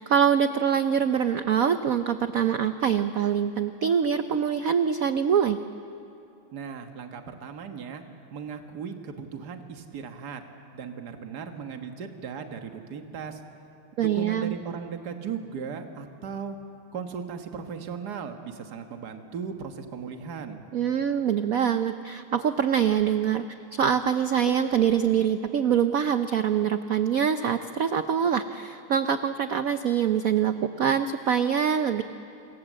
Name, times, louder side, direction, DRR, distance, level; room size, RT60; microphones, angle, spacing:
voice 1, 0.0-5.6 14.0-14.5 20.7-32.0, right 8 dB, 90° right, 9 dB, 0.7 m, -24 dB
voice 2, 6.5-8.0 8.3-10.4 10.7-13.4 14.0-16.6 16.9-20.6, right 6 dB, 50° right, 5 dB, 1.9 m, -37 dB
27.0 x 24.0 x 7.5 m, 2.7 s
omnidirectional pair, 2.4 m